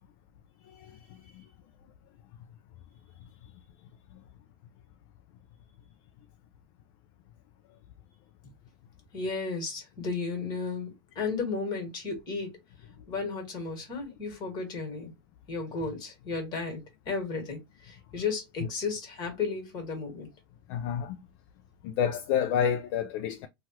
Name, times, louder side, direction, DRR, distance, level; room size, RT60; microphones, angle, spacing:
voice 1, 0.6-1.5 4.1-4.2 20.7-21.2 21.8-23.5, left 8 dB, 55° left, 0.4 m, -30 dB
voice 2, 9.1-12.5 13.1-15.1 15.5-20.3, left 4 dB, 35° left, 1.7 m, -34 dB
3.0 x 2.4 x 2.8 m
supercardioid pair, 120°, 13 cm